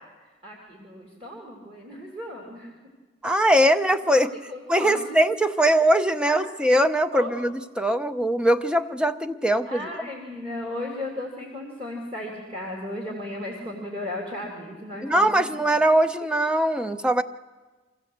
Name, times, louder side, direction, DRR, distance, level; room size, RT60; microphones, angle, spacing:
voice 1, 0.4-2.8 4.1-5.2 6.2-6.4 7.1-7.3 9.7-15.6, left 1 dB, 35° right, -1 dB, 2.9 m, -35 dB
voice 2, 3.2-4.3 4.7-9.9 15.0-17.2, right 1 dB, 5° right, 10 dB, 0.6 m, -21 dB
23.5 x 15.5 x 7.9 m, 1.3 s
head